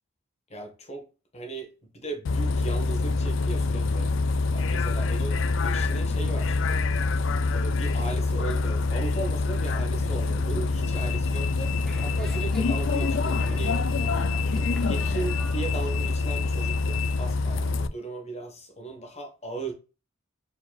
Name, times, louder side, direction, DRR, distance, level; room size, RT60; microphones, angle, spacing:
voice 1, 0.5-1.1 1.3-4.1 4.5-5.4 5.6-6.6 7.5-13.8 14.7-19.7, right 3 dB, 35° left, 1.3 m, -37 dB
Bus, 2.3-17.9, left 3 dB, 70° left, 0.4 m, -25 dB
sound 1, 10.7-16.1, equal, ahead, 0.7 m, -44 dB
4.8 x 4.2 x 2.4 m
head